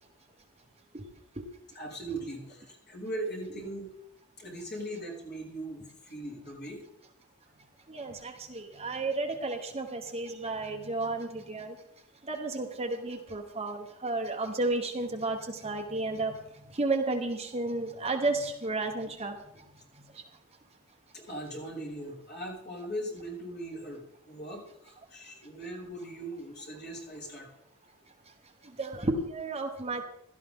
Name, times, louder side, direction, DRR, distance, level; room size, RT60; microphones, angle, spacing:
voice 1, 1.7-3.9 4.4-6.8 21.1-27.5, right 1 dB, 45° left, -4 dB, 5.6 m, -39 dB
voice 2, 7.9-11.7 12.3-16.3 16.7-19.3 28.8-30.0, right 2 dB, 25° right, 3 dB, 1.2 m, -32 dB
16.5 x 12.5 x 3.8 m, 0.80 s
head